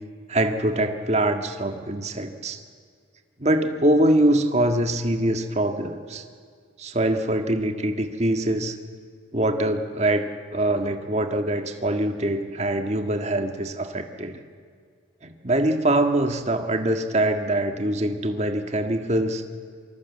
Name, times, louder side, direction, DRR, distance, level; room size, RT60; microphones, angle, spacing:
voice 1, 0.3-2.6 3.4-6.2 6.8-8.8 9.3-14.4 15.2-19.4, right 1 dB, 35° right, 6 dB, 1.7 m, -23 dB
27.0 x 25.0 x 8.5 m, 2.1 s
head